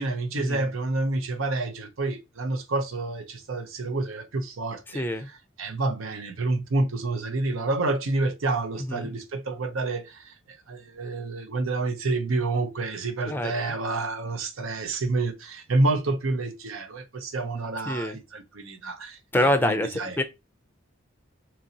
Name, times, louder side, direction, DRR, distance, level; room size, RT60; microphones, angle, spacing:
voice 1, 0.0-5.0 5.6-19.2 19.6-20.2, right 2 dB, 85° right, 0.7 m, -28 dB
voice 2, 4.9-5.3 8.9-9.2 13.3-13.5 17.9-18.2 19.3-20.2, left 1 dB, 10° left, 0.4 m, -25 dB
3.9 x 3.0 x 2.8 m
head